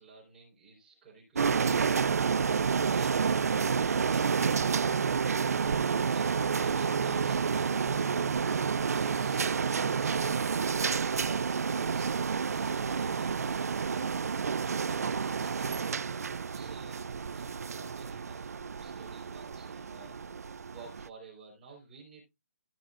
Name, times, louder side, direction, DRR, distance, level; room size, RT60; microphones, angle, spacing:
voice 1, 0.0-8.4 14.6-22.3, right 4 dB, 5° right, -8 dB, 3.8 m, -53 dB
sound 1, 1.4-21.1, right 6 dB, 75° right, 0.4 m, -30 dB
15.5 x 5.6 x 2.4 m, 0.22 s
hypercardioid pair, 180°, 8 cm